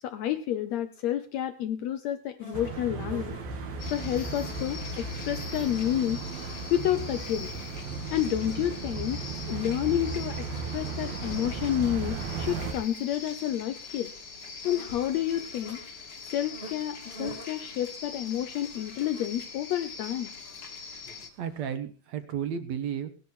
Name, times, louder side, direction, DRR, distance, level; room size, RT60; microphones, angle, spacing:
voice 1, 0.0-3.4 3.9-6.2 6.7-7.5 8.1-9.2 9.5-14.1 14.6-15.8 16.3-20.3, left 11 dB, 80° left, 11 dB, 1.5 m, -30 dB
sound 1, 2.4-21.8, right 1 dB, 15° left, 1.3 m, -51 dB
sound 2, 2.5-12.7, right 4 dB, 85° right, 3.9 m, -36 dB
sound 3, 3.8-21.3, left 5 dB, 35° left, 1.7 m, -43 dB
voice 2, 21.1-23.1, right 8 dB, 60° right, 9 dB, 2.2 m, -33 dB
18.5 x 11.0 x 4.5 m, 0.38 s
omnidirectional pair, 4.0 m